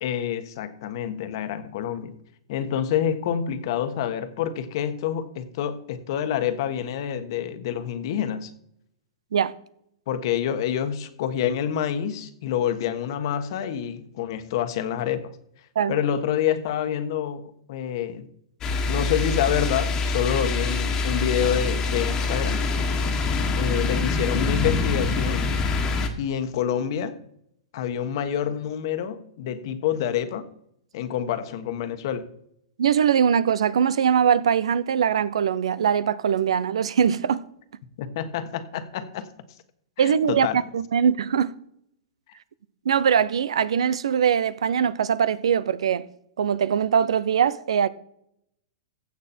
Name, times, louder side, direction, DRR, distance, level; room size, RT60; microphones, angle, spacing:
voice 1, 0.0-2.1 2.5-8.5 10.1-15.3 15.9-17.4 17.7-18.3 18.9-22.6 23.5-25.5 26.2-27.1 27.7-30.5 30.9-32.2 38.0-39.3 40.0-40.6, left 9 dB, 50° left, 1.3 m, -27 dB
sound 1, 18.6-26.1, left 3 dB, 20° left, 1.5 m, -25 dB
voice 2, 32.8-37.4 40.0-41.5 42.8-46.0 46.4-47.9, right 8 dB, 85° right, 0.7 m, -22 dB
15.5 x 8.4 x 4.4 m
hypercardioid pair, 155°, 3 cm